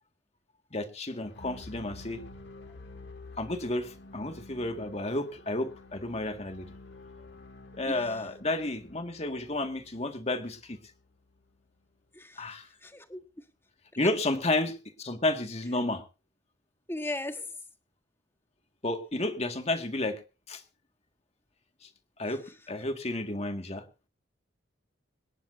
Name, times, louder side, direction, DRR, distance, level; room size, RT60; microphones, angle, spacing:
voice 1, 0.7-2.2 3.4-6.7 7.7-10.8 12.4-12.7 14.0-16.0 18.8-20.2 20.5-20.6 22.2-23.8, left 2 dB, 35° left, 6 dB, 2.0 m, -31 dB
sound 1, 1.2-11.2, left 2 dB, 65° left, 1.9 m, -49 dB
voice 2, 7.9-8.2 12.1-12.6 12.8-13.2 14.0-14.1 16.9-17.4 22.2-22.4, left 1 dB, 15° left, 7 dB, 1.5 m, -37 dB
25.5 x 10.5 x 2.7 m, 0.31 s
head